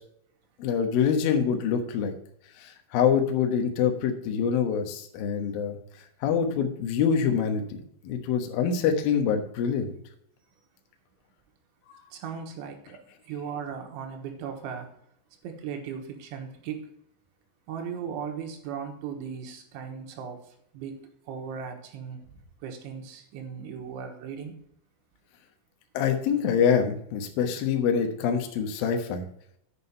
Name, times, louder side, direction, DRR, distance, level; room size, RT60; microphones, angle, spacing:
voice 1, 0.6-2.1 2.6-5.8 6.2-9.9 25.9-29.2, left 7 dB, 75° left, 2.1 m, -25 dB
voice 2, 12.1-13.0 13.3-15.0 15.4-16.9 17.7-24.6, right 7 dB, 75° right, 3.4 m, -37 dB
8.3 x 6.4 x 5.6 m
omnidirectional pair, 5.9 m